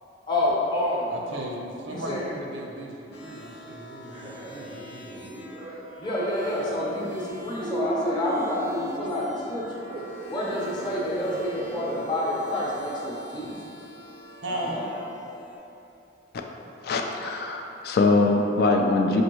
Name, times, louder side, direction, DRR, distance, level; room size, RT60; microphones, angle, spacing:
voice 1, 0.3-1.1 1.9-2.2 6.0-9.6 10.3-13.6 14.5-14.9, left 1 dB, 25° left, -6 dB, 0.7 m, -28 dB
voice 2, 1.1-5.2 14.4-14.9, right 1 dB, 90° right, -1 dB, 0.6 m, -36 dB
sound 1, 3.1-15.5, equal, 90° left, 1.0 m, -44 dB
sound 2, 4.0-5.9 6.7-7.1 7.6-12.3 12.9-13.0 14.6-14.8, equal, 25° right, 0.4 m, -35 dB
voice 3, 16.8-19.2, left 3 dB, 55° left, 3 dB, 0.3 m, -22 dB
6.1 x 2.5 x 3.0 m, 2.9 s
head